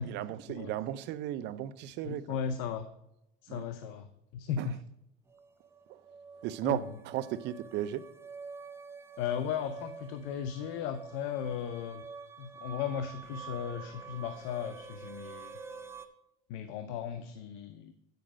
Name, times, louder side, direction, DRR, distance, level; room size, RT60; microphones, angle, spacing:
voice 1, 0.0-2.2 3.5-3.6 4.6-4.7 5.9-6.0 6.4-8.0, right 12 dB, 60° right, 0.6 m, -35 dB
voice 2, 2.0-2.9 3.4-4.8 6.6-6.9 9.2-12.1 12.4-15.6 16.5-17.9, left 8 dB, 75° left, 0.7 m, -36 dB
sound 1, 5.3-16.1, right 5 dB, 15° right, 0.6 m, -47 dB
9.3 x 4.9 x 6.1 m
cardioid pair, 135°, 20 cm